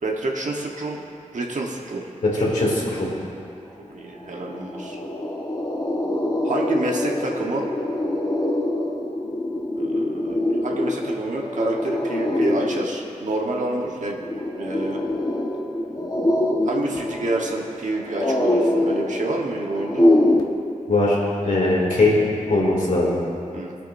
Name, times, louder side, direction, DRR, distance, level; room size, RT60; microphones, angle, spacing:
voice 1, 0.0-1.0 1.3-2.1 3.9-5.0 6.4-7.7 9.8-14.2 14.6-15.0 16.6-20.1 23.5-23.8, right 2 dB, 70° right, -1 dB, 1.4 m, -28 dB
voice 2, 2.2-3.1 20.9-21.2 21.4-22.1 22.5-23.2, left 2 dB, 75° left, -5 dB, 2.8 m, -20 dB
sound 1, 3.8-3.9 4.2-20.4, left 1 dB, 30° left, 1.4 m, -24 dB
20.5 x 8.6 x 2.7 m, 2.5 s
cardioid pair, 60°, 13 cm